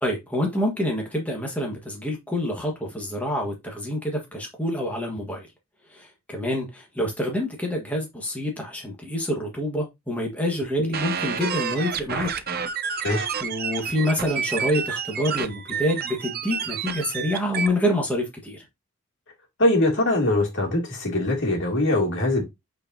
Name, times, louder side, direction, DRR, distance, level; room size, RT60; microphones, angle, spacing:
voice 1, 0.0-5.5 5.9-12.3 13.0-18.6, equal, 5° left, 1.5 m, -27 dB
sound 1, 10.9-17.7, right 7 dB, 45° right, 0.7 m, -29 dB
voice 2, 19.6-22.4, left 1 dB, 55° left, 2.5 m, -22 dB
8.5 x 4.5 x 2.7 m
head